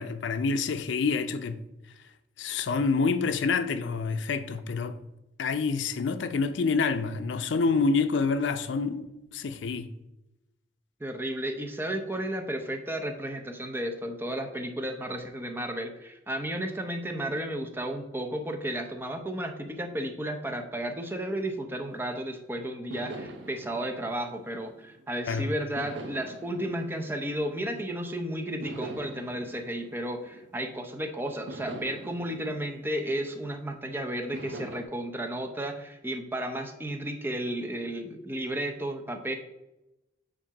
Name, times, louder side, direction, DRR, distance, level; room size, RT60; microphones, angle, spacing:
voice 1, 0.0-1.6 2.4-5.0 5.4-9.1 9.3-9.9 25.3-25.5, left 4 dB, 85° left, 0.5 m, -27 dB
voice 2, 11.0-39.3, right 1 dB, 10° right, 0.6 m, -33 dB
sound 1, 21.9-22.3 22.9-25.2 25.8-28.0 28.6-30.9 31.5-33.7 34.3-34.8, right 2 dB, 80° right, 0.8 m, -44 dB
7.2 x 2.6 x 5.8 m
head